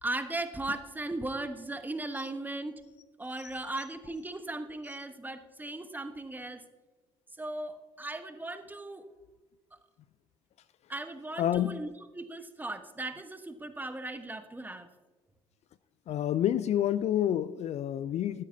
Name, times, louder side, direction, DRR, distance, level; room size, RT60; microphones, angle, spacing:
voice 1, 0.0-2.8 3.2-6.6 7.4-9.0 10.9-14.9, right 2 dB, 10° right, 1.2 m, -37 dB
voice 2, 11.4-11.9 16.1-18.4, left 11 dB, 50° left, 0.4 m, -28 dB
14.5 x 13.0 x 2.7 m
hypercardioid pair, 55°, 14 cm